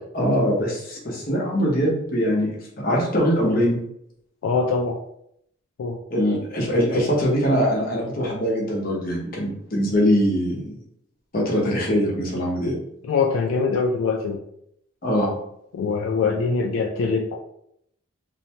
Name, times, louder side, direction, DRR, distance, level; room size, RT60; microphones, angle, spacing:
voice 1, 0.1-3.8 6.1-10.7 11.3-12.8 15.0-15.4, equal, 45° left, -3 dB, 0.8 m, -22 dB
voice 2, 4.4-5.0 5.8-6.0 13.0-14.4 15.7-17.4, left 4 dB, 80° left, 0 dB, 0.3 m, -23 dB
2.6 x 2.1 x 2.8 m, 0.72 s
head